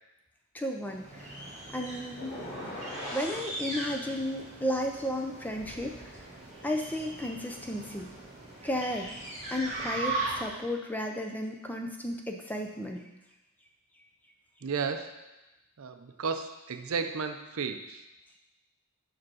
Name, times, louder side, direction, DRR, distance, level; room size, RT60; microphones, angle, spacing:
voice 1, 0.5-1.3 1.7-2.4 3.1-6.2 6.6-8.1 8.6-9.2 9.5-13.0, left 1 dB, 10° left, 2 dB, 0.5 m, -33 dB
sound 1, 0.8-10.7, right 2 dB, 30° right, 1.4 m, -39 dB
sound 2, 2.2-3.4, left 1 dB, 30° left, 2.1 m, -39 dB
voice 2, 14.6-15.3 15.8-18.1, right 5 dB, 70° right, 7 dB, 0.5 m, -34 dB
5.0 x 4.7 x 6.2 m, 0.99 s
head